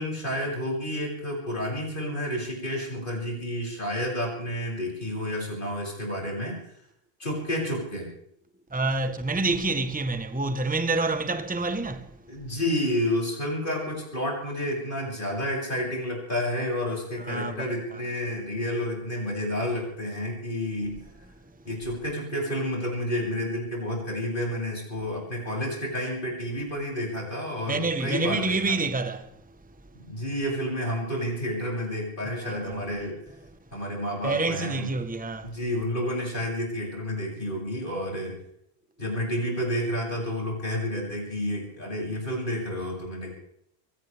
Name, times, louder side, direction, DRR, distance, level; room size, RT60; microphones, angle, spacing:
voice 1, 0.0-6.6 7.2-8.1 12.3-21.0 21.7-28.8 30.1-33.2 33.7-34.9 35.4-38.4 39.0-43.3, equal, 55° left, 7.2 m, -30 dB
voice 2, 8.7-12.2 17.2-18.0 27.7-29.4 32.2-32.8 34.2-35.6, right 3 dB, 10° right, 1.0 m, -28 dB
23.5 x 18.0 x 3.4 m
omnidirectional pair, 1.0 m